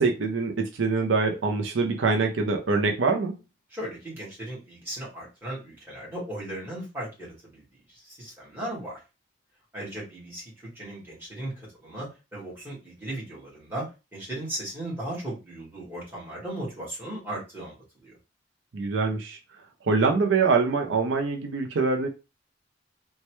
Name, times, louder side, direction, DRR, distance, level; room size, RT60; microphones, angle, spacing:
voice 1, 0.0-3.4 18.7-19.4 19.8-22.1, right 4 dB, 80° right, 0.5 m, -24 dB
voice 2, 3.7-7.6 7.9-9.0 9.7-17.8 18.0-18.2, right 1 dB, 10° right, 1.6 m, -37 dB
3.2 x 2.2 x 3.0 m
head